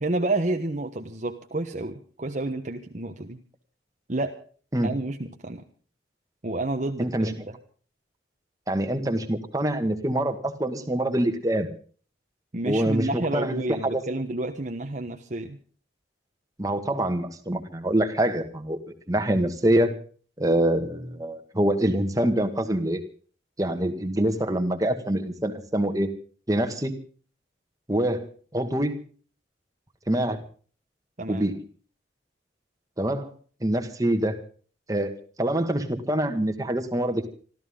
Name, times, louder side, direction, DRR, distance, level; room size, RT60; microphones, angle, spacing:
voice 1, 0.0-3.4 4.1-4.4 4.8-5.6 6.4-7.6 12.5-15.6 31.2-31.5, right 2 dB, 40° right, 5 dB, 1.2 m, -30 dB
voice 2, 7.0-7.3 8.7-11.7 12.7-13.6 13.9-14.2 16.6-18.8 19.1-19.9 20.4-23.0 23.6-26.1 26.5-26.9 27.9-29.0 30.1-30.4 31.3-31.6 33.0-33.3 33.6-34.4 34.9-35.1 35.4-37.3, right 1 dB, 20° right, 6 dB, 1.9 m, -25 dB
26.5 x 13.5 x 3.8 m, 0.42 s
head